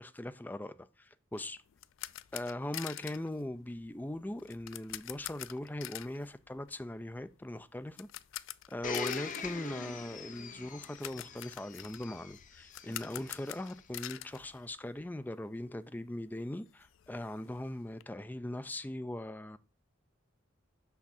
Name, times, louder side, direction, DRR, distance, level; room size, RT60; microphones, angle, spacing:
voice 1, 0.0-1.6 2.3-8.1 8.7-19.6, left 1 dB, 10° left, 0.4 m, -40 dB
sound 1, 1.3-15.3 15.6-15.7 16.1-16.2 16.5-18.0, left 14 dB, 75° left, 0.4 m, -47 dB
Domestic sounds home sounds, 8.8-13.7 14.4-14.5, left 5 dB, 40° left, 0.7 m, -43 dB
6.0 x 5.7 x 4.2 m
head